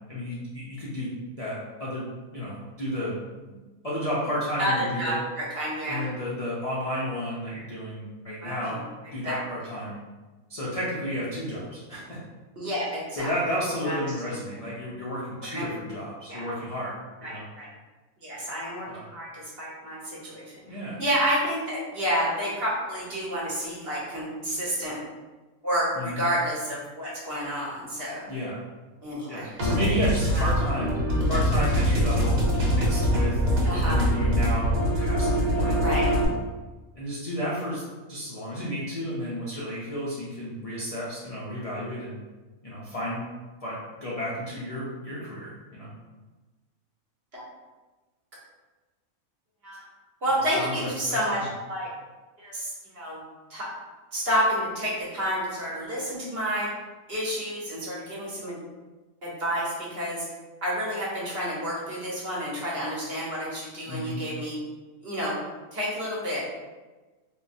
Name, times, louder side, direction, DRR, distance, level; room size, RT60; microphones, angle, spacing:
voice 1, 0.1-2.1 2.3-3.1 3.5-3.6 3.8-5.2 5.8-8.8 9.1-10.0 10.5-12.2 12.7-17.4 18.9-19.1 20.7-21.0 25.9-26.3 28.3-28.6 29.3-31.0 31.3-33.4 33.7-34.7 35.0-36.2 36.9-37.8 38.1-42.2 42.6-43.2 43.6-45.9 50.6-51.5 63.9-64.2, equal, 55° left, -7 dB, 0.4 m, -32 dB
voice 2, 4.6-6.0 8.4-8.8 9.2-9.4 12.6-13.3 13.8-14.0 15.5-15.7 16.3-16.4 17.2-17.7 18.2-20.6 21.0-25.0 25.6-28.2 29.0-29.5 30.3-30.5 33.6-34.0 35.8-36.1 37.5-37.6 47.3-47.4 49.6-49.8 50.2-51.9 52.4-53.2 53.5-53.7 54.1-56.7 57.1-58.6 59.2-60.2 60.6-64.6 65.0-65.4 65.7-66.4, equal, 50° right, -7 dB, 1.1 m, -29 dB
sound 1, 29.6-36.2, equal, 70° right, 1.3 m, -23 dB
3.5 x 2.2 x 2.6 m, 1.2 s
omnidirectional pair, 1.4 m